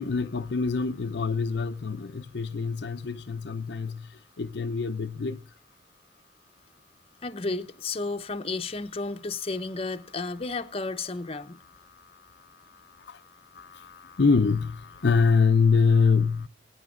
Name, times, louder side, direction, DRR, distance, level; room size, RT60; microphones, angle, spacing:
voice 1, 0.0-4.1 4.4-5.4 13.6-16.5, left 5 dB, 70° left, 0.6 m, -25 dB
voice 2, 7.2-11.6, left 3 dB, 35° left, 0.8 m, -32 dB
23.0 x 9.4 x 2.4 m
head